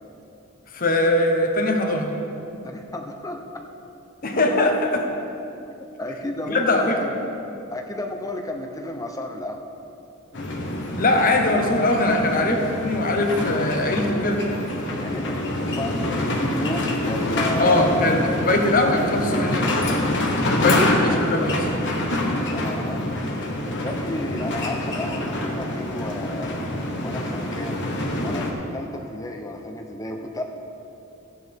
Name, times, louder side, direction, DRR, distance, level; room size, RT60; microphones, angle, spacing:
voice 1, 0.7-2.1 4.2-5.0 6.5-7.0 11.0-14.4 17.6-19.8 20.5-21.7, left 2 dB, 45° left, 2 dB, 1.3 m, -21 dB
voice 2, 2.6-3.4 5.7-7.3 7.7-9.6 15.0-17.9 22.5-23.2 23.8-26.6 27.0-27.8 28.2-30.4, left 1 dB, 15° left, 3 dB, 0.8 m, -32 dB
sound 1, 10.3-28.5, left 1 dB, 60° left, 1.4 m, -26 dB
15.5 x 10.0 x 3.6 m, 2.8 s
head